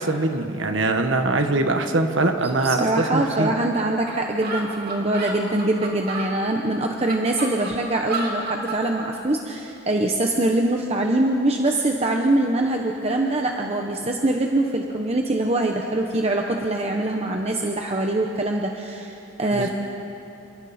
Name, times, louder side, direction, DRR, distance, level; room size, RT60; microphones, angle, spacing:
voice 1, 0.0-3.5 19.5-19.7, right 2 dB, 85° right, 5 dB, 1.6 m, -22 dB
voice 2, 2.6-19.7, right 2 dB, 35° right, 2 dB, 1.1 m, -23 dB
sound 1, 3.7-3.8 4.1-4.2 4.4-6.3 6.9-8.8, right 3 dB, 55° right, 3.1 m, -31 dB
29.0 x 25.5 x 4.4 m, 2.9 s
head